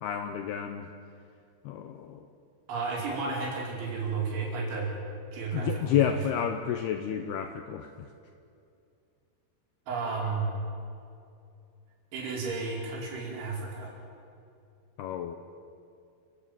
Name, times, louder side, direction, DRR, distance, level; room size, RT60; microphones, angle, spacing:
voice 1, 0.0-0.9 1.6-2.3 5.5-7.9 15.0-15.4, left 9 dB, 80° left, 7 dB, 2.4 m, -30 dB
voice 2, 2.7-4.9 5.3-6.2 9.9-10.5 12.1-13.9, right 4 dB, 70° right, -3 dB, 7.2 m, -32 dB
28.5 x 15.0 x 9.1 m, 2.5 s
omnidirectional pair, 5.6 m